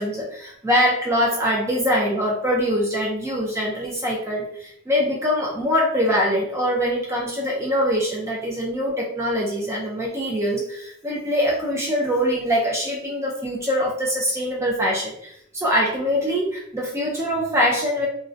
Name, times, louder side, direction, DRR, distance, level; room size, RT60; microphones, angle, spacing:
voice 1, 0.0-18.1, equal, 10° right, -2 dB, 0.3 m, -23 dB
2.5 x 2.0 x 2.5 m, 0.71 s
head